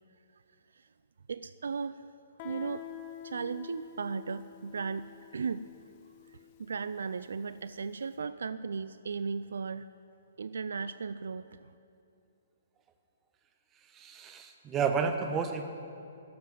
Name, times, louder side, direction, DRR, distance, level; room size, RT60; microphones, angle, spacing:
voice 1, 1.3-2.0 2.4-2.9 3.2-5.1 5.3-5.6 6.6-9.9 10.4-11.7, right 5 dB, 75° right, 14 dB, 0.3 m, -36 dB
Guitar, 2.4-7.8, left 11 dB, 40° left, 1.0 m, -48 dB
voice 2, 13.9-15.6, right 6 dB, 20° right, 6 dB, 1.2 m, -31 dB
12.0 x 7.8 x 9.8 m, 2.6 s
figure-of-eight pair, 125°, 0 cm